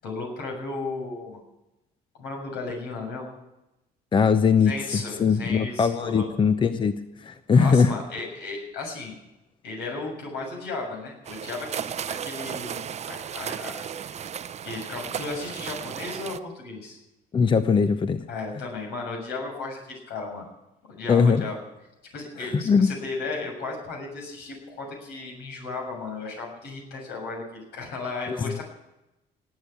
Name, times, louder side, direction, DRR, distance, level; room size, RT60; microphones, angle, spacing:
voice 1, 0.0-1.4 2.2-3.3 4.7-6.3 7.5-9.2 9.6-14.1 14.6-17.0 18.3-20.5 20.9-21.6 22.1-28.6, left 3 dB, 85° left, 0 dB, 7.1 m, -35 dB
voice 2, 4.1-7.9 17.3-18.2 21.1-21.4 22.4-22.9 28.3-28.6, left 5 dB, 30° left, 10 dB, 0.7 m, -21 dB
sound 1, 11.2-16.4, right 8 dB, 40° right, 0.7 m, -35 dB
18.5 x 8.3 x 8.7 m, 0.94 s
cardioid pair, 110°, 17 cm